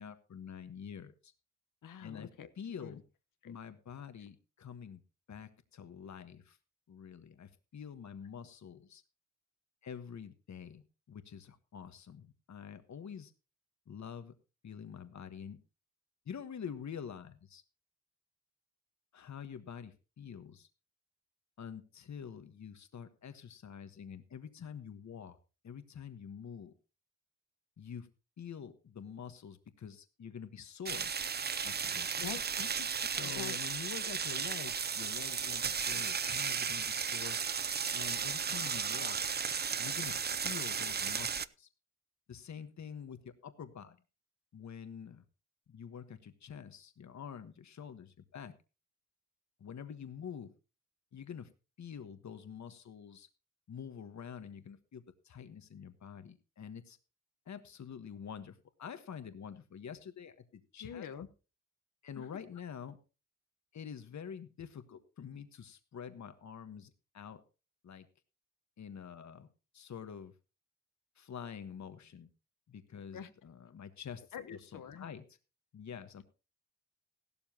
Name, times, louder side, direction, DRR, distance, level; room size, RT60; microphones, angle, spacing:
voice 1, 0.0-1.3 2.0-2.3 2.6-3.0 3.4-5.0 5.3-6.6 6.9-9.0 9.8-13.3 13.9-14.3 14.6-15.6 16.2-17.6 19.1-20.7 21.6-25.4 25.6-26.7 27.8-28.1 28.4-31.1 31.6-32.3 33.1-37.4 37.9-39.2 39.8-41.7 42.3-44.0 44.5-45.2 45.7-48.5 49.6-50.5 51.1-51.5 51.8-53.3 53.7-57.0 57.4-61.1 62.0-63.0 63.7-67.4 67.8-68.1 68.8-69.5 69.7-70.3 71.2-72.3 72.7-75.2 75.7-76.2, left 7 dB, 60° left, 10 dB, 1.4 m, -47 dB
voice 2, 1.8-2.5 2.8-3.0 3.4-3.6 32.2-33.6 60.8-61.3 62.2-62.4 73.1-73.3 74.3-75.1, left 8 dB, 80° left, 10 dB, 1.2 m, -45 dB
sound 1, 30.8-41.4, right 6 dB, 30° right, 0.5 m, -35 dB
16.0 x 12.5 x 2.9 m, 0.32 s
cardioid pair, 95°, 31 cm